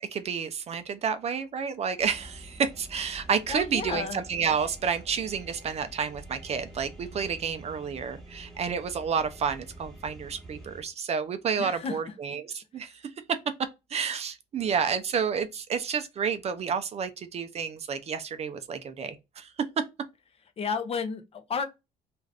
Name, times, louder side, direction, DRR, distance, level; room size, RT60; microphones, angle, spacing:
voice 1, 0.0-12.9 13.9-19.5, right 6 dB, 40° right, 0.4 m, -30 dB
sound 1, 2.0-10.8, right 1 dB, ahead, 1.0 m, -47 dB
voice 2, 3.5-4.2 11.6-12.0 20.6-21.6, left 5 dB, 35° left, 0.5 m, -32 dB
2.5 x 2.3 x 3.2 m
cardioid pair, 110°, 17 cm